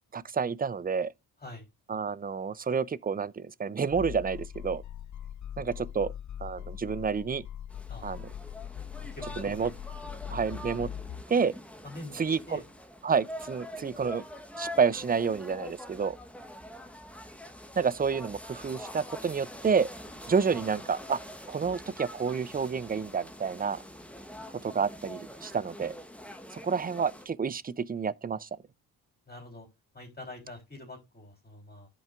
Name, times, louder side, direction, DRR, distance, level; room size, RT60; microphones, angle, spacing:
voice 1, 0.1-1.1 1.9-4.8 5.6-6.1 6.4-7.4 8.0-8.3 9.4-9.7 10.3-10.9 11.3-11.5 12.1-12.6 13.0-14.2 14.6-16.2 17.8-19.9 20.3-21.2 21.5-23.8 24.5-26.0 26.5-28.5, right 6 dB, 25° right, 0.4 m, -29 dB
sound 1, 3.9-11.2, left 10 dB, 50° left, 0.5 m, -41 dB
sound 2, 7.7-27.3, equal, 5° left, 1.1 m, -45 dB
voice 2, 9.1-9.7 11.8-12.6 29.3-29.7 29.9-31.9, left 2 dB, 25° left, 3.8 m, -45 dB
14.0 x 5.4 x 2.4 m
cardioid pair, 95°, 40 cm